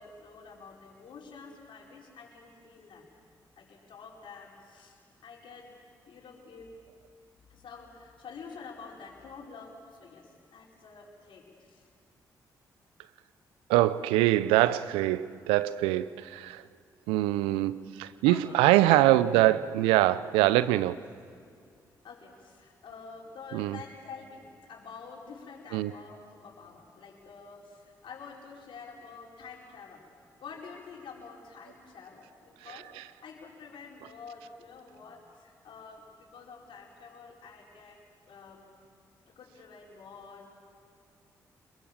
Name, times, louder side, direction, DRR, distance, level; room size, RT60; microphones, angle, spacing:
voice 1, 0.0-3.1 3.6-5.7 6.1-6.7 7.5-11.8 18.2-18.6 22.0-30.1 30.4-38.7 39.3-40.5, left 5 dB, 65° left, -2 dB, 5.0 m, -48 dB
voice 2, 13.7-16.6 17.1-21.0 23.5-23.8 25.7-25.9 32.7-33.0, right 15 dB, 85° right, 16 dB, 0.5 m, -24 dB
26.5 x 22.0 x 7.5 m, 2.2 s
hypercardioid pair, 40°, 9 cm